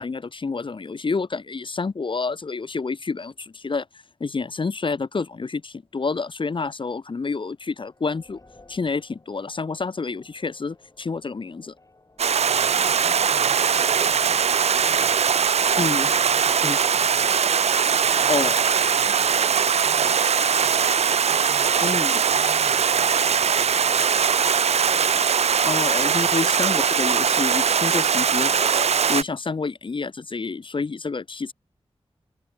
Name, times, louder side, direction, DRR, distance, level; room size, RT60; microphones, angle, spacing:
voice 1, 0.0-3.9 4.2-8.4 8.7-11.7 15.8-16.1 16.6-16.8 18.3-18.5 21.8-22.2 25.7-31.5, left 4 dB, 50° left, 0.9 m, -28 dB
sound 1, 7.5-18.9, left 2 dB, 30° left, 7.2 m, -57 dB
Stream, 12.2-29.2, right 7 dB, 80° right, 0.5 m, -21 dB
voice 2, 12.4-17.5 18.0-21.0 21.4-24.9, right 4 dB, 65° right, 4.7 m, -48 dB
wide cardioid pair, 70°, 11 cm